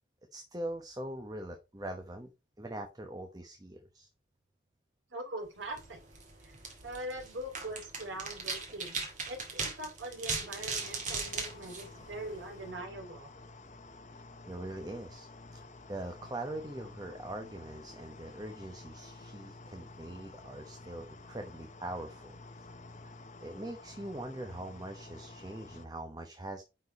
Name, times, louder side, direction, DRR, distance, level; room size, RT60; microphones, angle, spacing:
voice 1, 0.3-2.3 2.6-4.1 14.5-23.1 23.4-26.6, right 1 dB, 20° right, 4 dB, 0.9 m, -42 dB
voice 2, 5.1-6.0 6.8-9.0 9.3-13.3, right 1 dB, 75° right, 3 dB, 2.6 m, -42 dB
sound 1, 5.6-12.6, right 4 dB, 40° right, 2.1 m, -39 dB
sound 2, 10.5-25.9, left 3 dB, 40° left, 1.1 m, -51 dB
9.6 x 4.5 x 4.2 m, 0.27 s
head